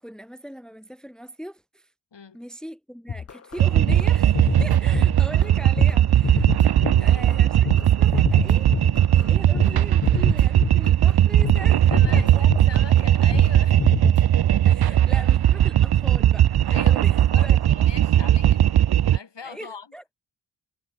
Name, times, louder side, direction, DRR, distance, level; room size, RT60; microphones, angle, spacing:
voice 1, 0.0-1.9 2.3-6.5 7.0-7.7 8.0-8.7 9.1-12.4 14.6-17.7 19.4-20.0, right 1 dB, ahead, 1.3 m, -40 dB
sound 1, 3.1-9.8 10.0-11.1 11.4-11.6 11.9-13.0 13.3-13.5 13.8-14.2, left 6 dB, 35° left, 0.6 m, -29 dB
sound 2, 3.6-19.2, right 11 dB, 60° right, 0.5 m, -18 dB
voice 2, 7.0-7.3 11.9-13.8 14.9-15.3 16.7-18.8 19.1-19.9, left 6 dB, 70° left, 6.6 m, -41 dB
wide cardioid pair, 80°, 43 cm